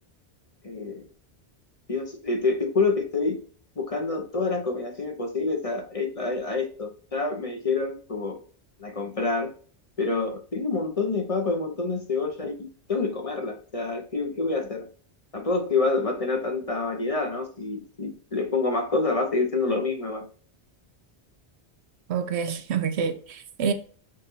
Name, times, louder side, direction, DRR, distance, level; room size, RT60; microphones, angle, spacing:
voice 1, 0.6-1.1 1.9-3.4 3.8-8.4 8.8-9.5 10.0-14.9 15.3-20.2, left 3 dB, 35° left, 1.0 m, -27 dB
voice 2, 22.1-23.7, right 6 dB, 80° right, 0.9 m, -27 dB
6.6 x 2.7 x 5.5 m
omnidirectional pair, 1.1 m